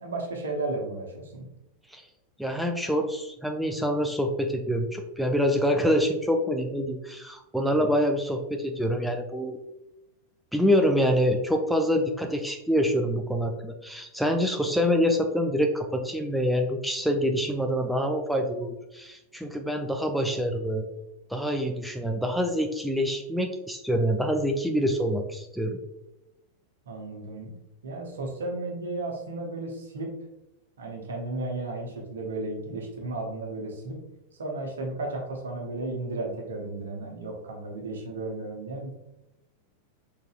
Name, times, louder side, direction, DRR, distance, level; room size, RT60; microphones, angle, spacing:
voice 1, 0.0-1.5 7.7-7.9 26.9-27.6 27.8-30.1 30.8-34.0 34.4-38.9, right 2 dB, 65° right, 1 dB, 1.0 m, -34 dB
voice 2, 2.4-9.6 10.5-20.8 21.3-25.8, equal, ahead, 3 dB, 0.4 m, -26 dB
4.6 x 3.9 x 2.4 m, 0.95 s
figure-of-eight pair, 90°, 0 cm